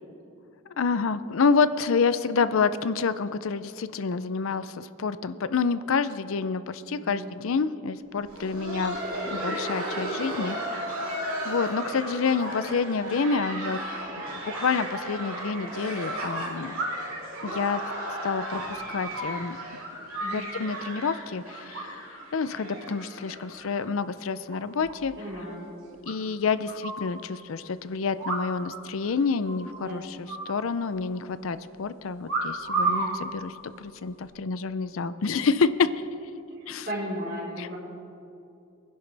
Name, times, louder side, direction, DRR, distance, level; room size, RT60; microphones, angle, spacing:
voice 1, 0.8-9.0 9.2-10.6 11.4-13.8 14.5-16.8 17.4-17.8 18.2-19.6 20.3-25.1 26.0-35.9 36.7-36.9 37.6-37.7, left 5 dB, 70° left, 14 dB, 0.5 m, -28 dB
voice 2, 7.0-7.3 20.2-20.5 25.2-25.7 29.8-30.1 32.8-33.2 36.6-37.8, equal, 50° right, -4 dB, 4.0 m, -35 dB
Laughter, 8.2-23.8 24.1-24.2 24.8-24.9 25.5-25.7 26.7-26.8, right 1 dB, 90° right, 3.4 m, -35 dB
sound 1, 14.9-15.0 16.7-17.2 17.6-19.7 19.9-20.9 21.7-22.3 22.6-22.9 23.3-23.9 24.2-24.3 24.5-24.6 24.9-25.0 25.3-25.4 26.1-27.1 28.2-28.8 29.0-29.1 29.4-29.8 30.3-31.2 32.3-33.1 33.9-34.2, right 3 dB, 65° right, 2.4 m, -32 dB
23.0 x 11.0 x 3.4 m, 2.7 s
head